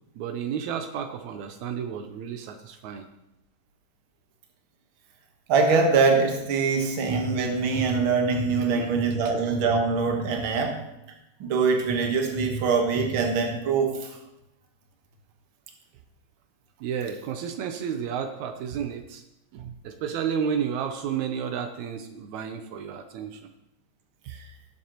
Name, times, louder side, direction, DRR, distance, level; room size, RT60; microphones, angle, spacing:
voice 1, 0.2-3.1 8.6-8.9 16.8-19.2 19.5-23.5 24.3-24.4, right 7 dB, 80° right, 7 dB, 2.0 m, -32 dB
voice 2, 5.5-10.8 11.4-14.1, right 4 dB, 55° right, 3 dB, 1.8 m, -23 dB
17.5 x 7.4 x 3.0 m, 0.86 s
omnidirectional pair, 3.3 m